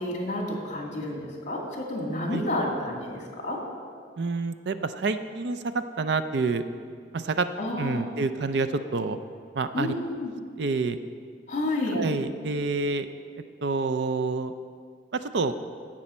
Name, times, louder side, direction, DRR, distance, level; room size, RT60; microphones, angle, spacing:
voice 1, 0.0-3.2 3.4-3.6 7.6-8.0 9.7-10.3 11.5-12.0, left 1 dB, 45° left, 0 dB, 2.1 m, -30 dB
voice 2, 4.2-5.6 6.0-6.6 7.1-7.5 7.8-8.7 8.9-9.2 9.5-9.9 10.6-11.0 11.9-13.1 13.6-14.5 15.3-15.5, right 4 dB, 70° right, 10 dB, 0.5 m, -27 dB
16.5 x 6.3 x 4.3 m, 2.1 s
head